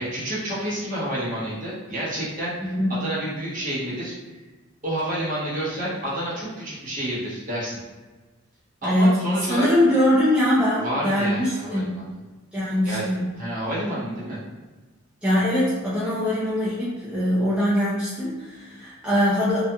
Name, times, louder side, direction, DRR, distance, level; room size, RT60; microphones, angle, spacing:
voice 1, 0.0-4.1 4.8-7.8 8.8-9.7 10.8-12.1 12.8-13.0 13.4-14.4, right 1 dB, 40° right, -8 dB, 0.9 m, -29 dB
voice 2, 2.6-3.0 8.8-9.2 9.5-11.9 12.5-13.3 15.2-19.7, equal, 5° right, -10 dB, 0.4 m, -22 dB
2.8 x 2.4 x 2.3 m, 1.3 s
head